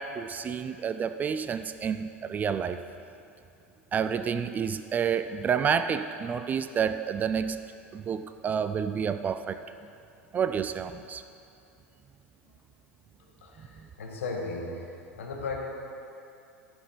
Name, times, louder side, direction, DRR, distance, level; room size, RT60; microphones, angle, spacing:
voice 1, 0.0-2.8 3.9-7.6 7.9-9.6 10.3-11.2, right 7 dB, 20° right, 11 dB, 0.3 m, -29 dB
voice 2, 13.4-15.6, left 3 dB, 65° left, 0 dB, 1.7 m, -36 dB
14.0 x 6.2 x 5.3 m, 2.6 s
figure-of-eight pair, 80°, 8 cm